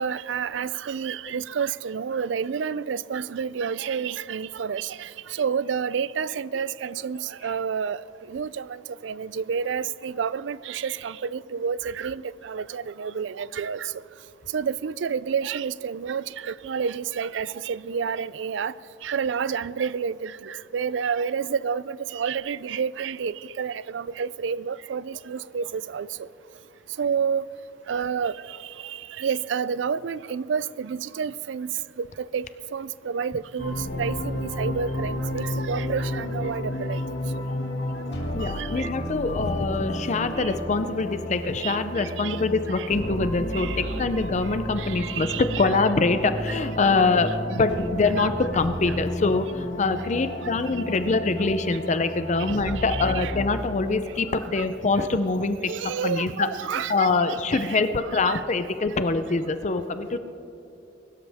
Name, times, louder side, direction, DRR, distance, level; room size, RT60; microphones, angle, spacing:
voice 1, 0.0-8.0 8.3-13.9 14.5-18.7 19.0-26.3 27.0-27.4 27.9-31.7 32.0-37.0 38.4-38.9 40.4-40.5 41.6-42.4 42.7-42.9 43.5-44.0 44.8-45.6 48.2-48.3 50.4-50.5 52.4-53.3 54.6-54.7 55.7-57.1 57.5-57.8 58.2-58.4, right 6 dB, 75° right, 18 dB, 0.4 m, -30 dB
sound 1, 33.6-53.5, left 1 dB, 65° left, 2.4 m, -32 dB
voice 2, 38.3-56.5 56.9-60.2, left 3 dB, 40° left, 10 dB, 0.5 m, -24 dB
22.5 x 12.5 x 3.5 m, 2.9 s
head